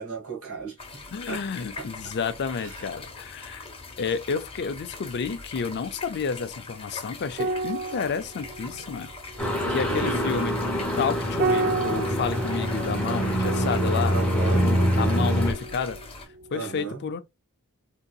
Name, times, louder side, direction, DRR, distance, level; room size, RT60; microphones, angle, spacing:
voice 1, 0.0-1.0 1.3-1.4 1.8-1.9 2.6-2.8 9.8-10.2 14.1-15.3 16.5-17.0, right 5 dB, 70° right, 1.6 m, -35 dB
sound 1, 0.8-16.2, left 3 dB, 25° left, 1.0 m, -42 dB
voice 2, 1.1-3.7 4.0-9.1 9.7-10.5 11.0-16.0 16.5-17.2, left 6 dB, 50° left, 0.4 m, -30 dB
sound 2, 7.3-16.1 16.3-16.6, right 3 dB, 45° right, 0.3 m, -33 dB
sound 3, 9.4-15.5, equal, 5° left, 1.0 m, -25 dB
3.7 x 2.8 x 2.2 m
head